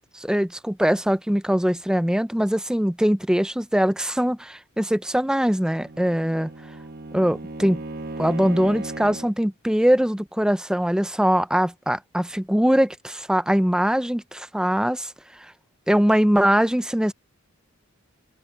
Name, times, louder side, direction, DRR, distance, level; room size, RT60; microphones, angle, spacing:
voice 1, 0.1-6.5 7.1-7.8 8.2-15.1 15.9-17.1, equal, 5° right, 0.5 m, -22 dB
Bowed string instrument, 5.6-9.4, right 2 dB, 45° right, 1.3 m, -36 dB
head